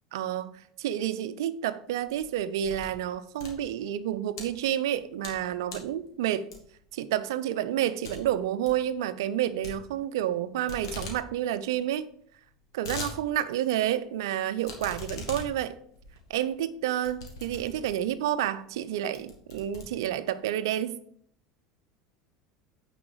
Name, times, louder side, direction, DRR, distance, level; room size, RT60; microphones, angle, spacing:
voice 1, 0.1-0.5 0.8-6.5 6.9-12.1 12.7-15.8 16.3-21.0, right 11 dB, 70° right, 0.6 m, -29 dB
sound 1, 2.0-3.0 3.3-4.4 4.9-5.4 5.7-6.0 6.5-6.9 7.3-7.4 7.7-7.8 8.0-8.2 8.5-8.8 9.6-10.4 10.7-11.2 11.5-11.6 11.8-11.9 12.4-13.1 13.6-13.7 14.6-18.1 18.7-18.8 19.1-20.4, left 4 dB, 75° left, 2.1 m, -41 dB
9.5 x 4.9 x 4.8 m
hypercardioid pair, 75°, 2 cm